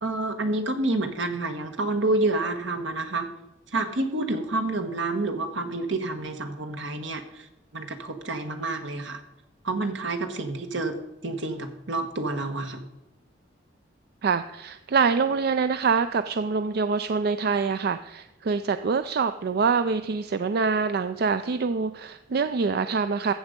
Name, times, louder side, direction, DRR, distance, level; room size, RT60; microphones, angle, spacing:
voice 1, 0.0-3.3 3.7-9.2 9.6-11.0 11.2-12.8, right 2 dB, 75° right, 6 dB, 1.4 m, -28 dB
voice 2, 14.2-23.3, right 5 dB, 55° right, 11 dB, 0.4 m, -25 dB
14.0 x 7.6 x 5.2 m, 0.96 s
head